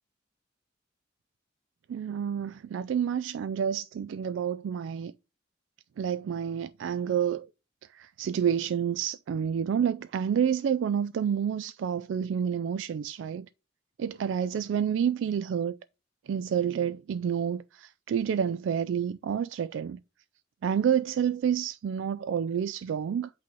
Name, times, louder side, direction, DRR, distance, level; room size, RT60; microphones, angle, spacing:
voice 1, 1.9-5.1 6.0-7.5 7.9-13.5 14.0-15.8 16.3-20.0 20.6-23.3, right 8 dB, 80° right, 0.3 m, -29 dB
8.4 x 3.1 x 6.0 m
head